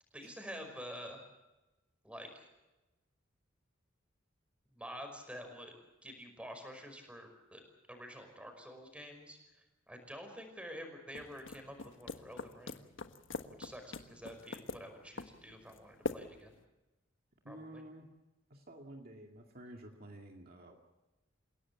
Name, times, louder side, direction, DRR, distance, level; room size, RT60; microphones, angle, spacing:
voice 1, 0.1-1.2 2.0-2.5 4.7-5.7 6.0-7.6 7.9-9.4 9.9-12.8 13.6-16.5 17.5-17.8, equal, 5° right, 5 dB, 5.4 m, -48 dB
sound 1, 11.1-16.6, left 3 dB, 70° left, 1.4 m, -44 dB
voice 2, 17.4-18.1 18.5-20.8, right 1 dB, 50° right, 2 dB, 2.4 m, -51 dB
29.0 x 17.0 x 7.3 m, 1.0 s
head